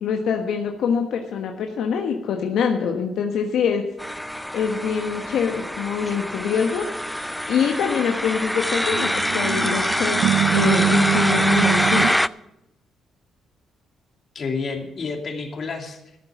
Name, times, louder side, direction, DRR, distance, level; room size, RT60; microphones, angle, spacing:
voice 1, 0.0-3.8 4.5-6.9 7.5-12.1, left 7 dB, 75° left, 3 dB, 1.3 m, -24 dB
sound 1, 4.0-12.3, equal, 5° left, 0.3 m, -25 dB
sound 2, 8.9-12.2, right 11 dB, 75° right, 0.4 m, -24 dB
voice 2, 14.3-16.2, left 4 dB, 45° left, 3 dB, 2.7 m, -30 dB
13.5 x 7.3 x 8.3 m, 0.88 s
cardioid pair, 90°, 0 cm